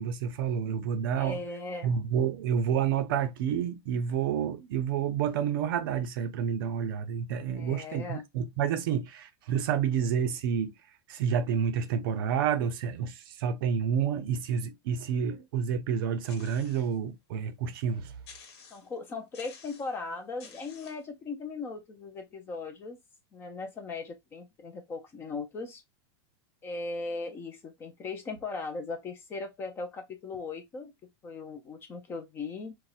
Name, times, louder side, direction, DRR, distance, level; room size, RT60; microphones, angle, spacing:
voice 1, 0.0-1.4 1.8-10.7 11.1-18.1, right 7 dB, 55° right, 0.5 m, -29 dB
voice 2, 1.2-2.0 7.6-8.2 18.7-23.0 23.3-25.8 26.6-30.9 31.2-32.7, left 3 dB, 15° left, 0.4 m, -38 dB
sound 1, 16.3-17.0 17.5-17.6 18.2-19.0 19.3-20.0 20.4-21.1, left 6 dB, 80° left, 1.0 m, -52 dB
4.1 x 2.1 x 2.3 m
supercardioid pair, 170°, 14 cm